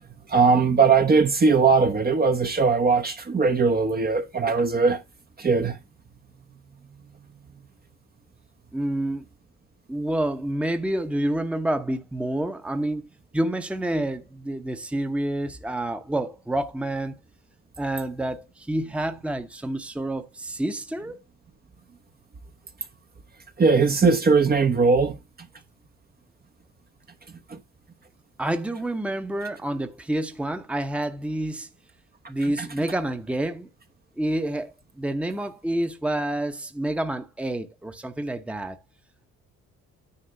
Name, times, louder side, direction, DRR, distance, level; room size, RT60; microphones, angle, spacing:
voice 1, 0.3-5.0 5.4-5.8 23.6-25.2 27.5-27.6 32.6-32.7, right 4 dB, 30° right, 1.0 m, -20 dB
voice 2, 8.7-9.3 9.9-13.1 13.3-17.2 17.8-21.2 28.4-31.7 32.3-33.7 34.2-38.8, right 1 dB, 5° right, 0.9 m, -28 dB
9.8 x 3.5 x 6.8 m
cardioid pair, 90°, 30 cm